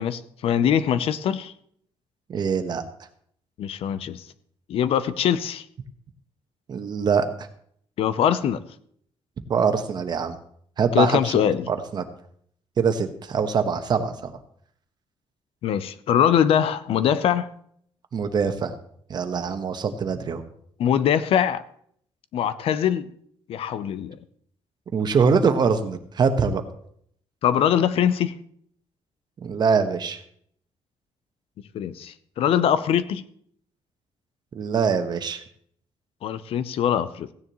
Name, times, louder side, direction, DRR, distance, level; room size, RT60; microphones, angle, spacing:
voice 1, 0.0-1.5 3.6-4.2 4.7-5.6 8.0-8.6 10.9-11.7 15.6-17.5 20.8-21.6 22.3-23.1 23.5-24.2 27.4-28.3 31.7-33.2 36.2-37.3, left 9 dB, 75° left, 14 dB, 0.7 m, -22 dB
voice 2, 2.3-2.8 6.7-7.5 9.5-10.4 10.8-12.0 12.8-14.3 18.1-18.7 19.1-20.4 24.9-26.6 29.4-30.2 34.5-35.4, right 5 dB, 45° right, 8 dB, 1.1 m, -23 dB
16.0 x 9.8 x 3.0 m, 0.65 s
cardioid pair, 125°, 10 cm